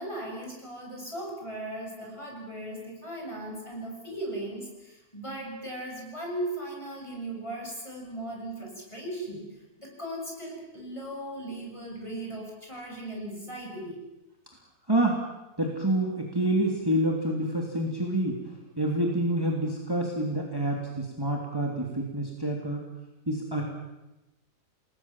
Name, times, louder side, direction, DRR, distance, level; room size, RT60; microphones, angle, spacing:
voice 1, 0.0-9.5 9.8-14.0, right 1 dB, 20° left, -1 dB, 7.9 m, -37 dB
voice 2, 15.6-18.4 18.8-22.8 23.3-23.6, right 1 dB, 15° right, 0 dB, 3.0 m, -27 dB
29.5 x 20.0 x 7.4 m, 0.98 s
omnidirectional pair, 1.6 m